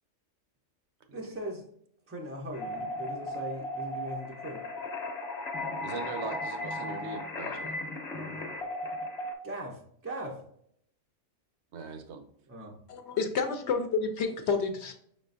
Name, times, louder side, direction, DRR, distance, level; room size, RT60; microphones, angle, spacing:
voice 1, 1.1-1.6 2.1-4.6 8.1-8.5 9.4-10.4 12.5-12.8, right 1 dB, 25° right, -1 dB, 0.3 m, -40 dB
sound 1, 2.5-9.3, left 1 dB, 35° left, 0.9 m, -36 dB
voice 2, 5.8-7.8 11.7-12.2, right 5 dB, 65° right, 7 dB, 0.9 m, -40 dB
voice 3, 12.9-14.9, left 5 dB, 65° left, 6 dB, 0.8 m, -29 dB
5.7 x 3.7 x 2.5 m, 0.69 s
omnidirectional pair, 1.4 m